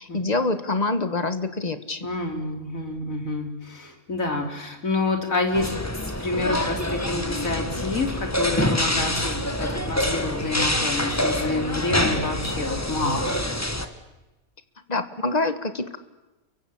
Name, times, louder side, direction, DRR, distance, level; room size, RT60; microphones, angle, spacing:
voice 1, 0.0-2.1 14.9-16.0, left 2 dB, 30° left, 10 dB, 1.6 m, -26 dB
voice 2, 2.0-5.7 6.2-13.4, left 2 dB, 65° left, 4 dB, 3.9 m, -28 dB
sound 1, 5.5-13.9, left 1 dB, 10° left, 1.6 m, -26 dB
29.0 x 24.0 x 7.2 m, 1.1 s
omnidirectional pair, 1.5 m